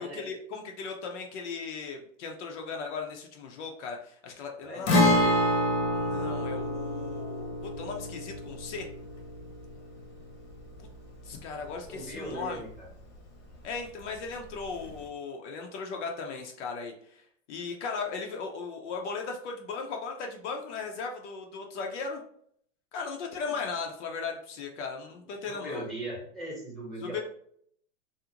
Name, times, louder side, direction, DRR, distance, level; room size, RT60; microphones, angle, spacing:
voice 1, 0.0-5.3 5.9-8.9 11.2-12.6 13.6-22.2 22.9-25.9 27.0-27.2, left 4 dB, 60° left, 2 dB, 0.6 m, -37 dB
voice 2, 4.6-5.1 11.9-12.9 25.5-27.2, right 1 dB, ahead, -5 dB, 0.9 m, -39 dB
Guitar, 4.9-12.5 12.8-12.9 14.9-15.0, left 1 dB, 80° left, 1.0 m, -28 dB
2.5 x 2.0 x 2.8 m, 0.65 s
hypercardioid pair, 135°, 39 cm